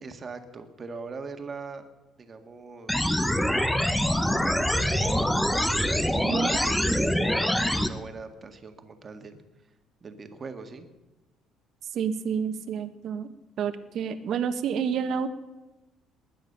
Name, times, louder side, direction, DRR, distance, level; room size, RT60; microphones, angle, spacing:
voice 1, 0.0-1.9 2.2-3.1 4.7-5.3 5.6-9.4 10.0-10.9, right 4 dB, 30° right, 8 dB, 1.8 m, -41 dB
sound 1, 2.9-7.9, equal, 5° left, 1.0 m, -24 dB
voice 2, 11.9-15.3, right 7 dB, 55° right, 10 dB, 1.3 m, -29 dB
20.0 x 10.5 x 6.7 m, 1.1 s
cardioid pair, 130°, 0 cm